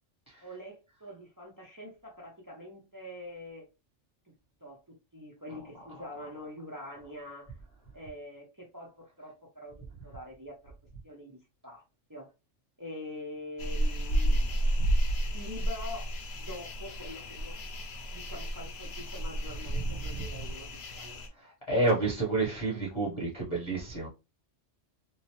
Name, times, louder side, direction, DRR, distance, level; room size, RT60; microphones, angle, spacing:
voice 1, 0.4-3.7 4.6-7.5 7.9-9.8 10.0-10.7 11.0-11.4 11.6-11.8 12.1-12.3 12.8-14.5 15.3-17.6 18.1-21.2, left 1 dB, 25° right, 0.5 m, -45 dB
sound 1, 13.6-21.3, right 1 dB, 60° left, 0.9 m, -31 dB
voice 2, 21.4-24.1, right 2 dB, 25° left, 0.8 m, -30 dB
3.0 x 2.0 x 2.8 m
omnidirectional pair, 1.3 m